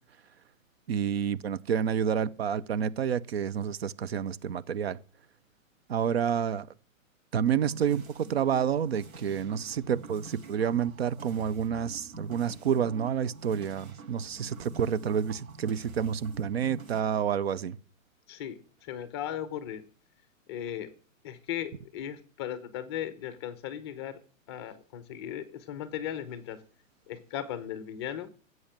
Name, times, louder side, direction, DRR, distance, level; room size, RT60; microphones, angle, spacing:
voice 1, 0.9-5.0 5.9-6.7 7.3-17.8, right 8 dB, 50° right, 0.7 m, -29 dB
sound 1, 7.5-17.0, right 4 dB, 85° right, 6.2 m, -47 dB
voice 2, 18.3-19.8 20.5-20.9 21.2-24.2 24.5-26.6 27.1-28.3, left 10 dB, 20° left, 0.8 m, -37 dB
15.5 x 7.9 x 7.3 m
hypercardioid pair, 170°, 40 cm